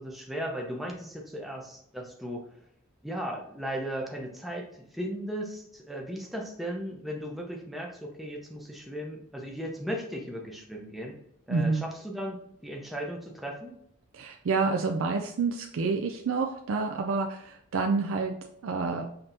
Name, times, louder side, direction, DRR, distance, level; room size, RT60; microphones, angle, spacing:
voice 1, 0.0-2.5 3.0-11.2 11.5-13.7, equal, ahead, 0 dB, 0.7 m, -36 dB
voice 2, 11.5-11.9 14.1-18.4 18.6-19.1, right 4 dB, 70° right, 3 dB, 0.4 m, -28 dB
5.7 x 3.4 x 2.6 m, 0.72 s
head